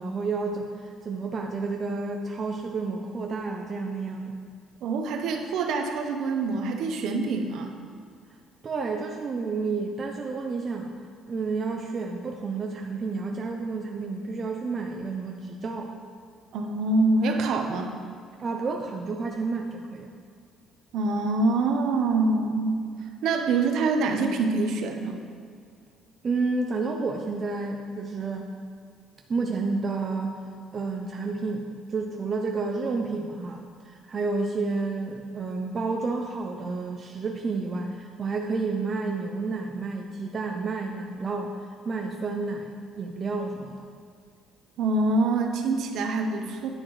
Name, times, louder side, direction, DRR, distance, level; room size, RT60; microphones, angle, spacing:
voice 1, 0.0-4.4 8.6-10.9 11.3-15.9 18.4-20.1 26.2-28.5 29.3-30.4 30.7-41.5 41.8-43.8, right 3 dB, 25° right, 2 dB, 0.4 m, -30 dB
voice 2, 4.8-7.8 16.5-17.9 20.9-22.8 23.2-25.2 44.8-46.7, right 3 dB, 55° right, 4 dB, 0.8 m, -25 dB
9.9 x 9.8 x 3.1 m, 2.1 s
cardioid pair, 175°, 0 cm